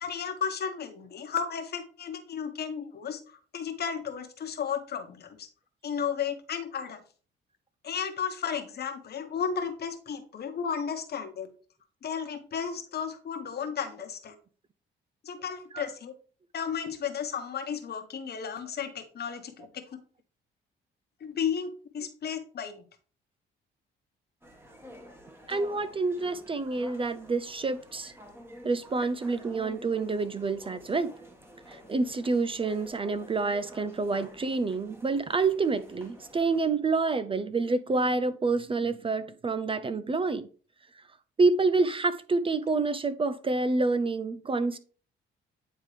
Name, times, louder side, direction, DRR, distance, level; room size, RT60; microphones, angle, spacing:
voice 1, 0.0-3.2 3.5-5.5 5.8-7.0 7.8-11.5 12.0-14.4 15.2-16.1 16.5-19.8 21.2-22.8, left 7 dB, 55° left, 1.1 m, -33 dB
sound 1, 24.4-36.6, equal, 10° right, 1.5 m, -50 dB
voice 2, 25.5-28.1 28.6-31.1 31.7-40.5 41.4-44.8, right 3 dB, 25° right, 0.4 m, -28 dB
9.1 x 3.7 x 3.2 m
cardioid pair, 90°, 20 cm